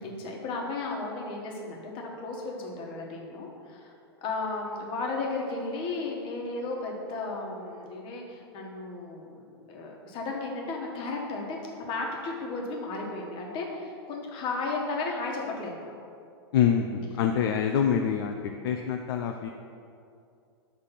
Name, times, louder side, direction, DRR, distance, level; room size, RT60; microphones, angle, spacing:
voice 1, 0.0-3.9 4.2-15.8, left 3 dB, 40° left, -1 dB, 1.3 m, -34 dB
voice 2, 16.5-18.3 18.6-19.5, left 8 dB, 60° left, 4 dB, 0.4 m, -25 dB
6.6 x 3.4 x 5.7 m, 2.5 s
hypercardioid pair, 110°, 14 cm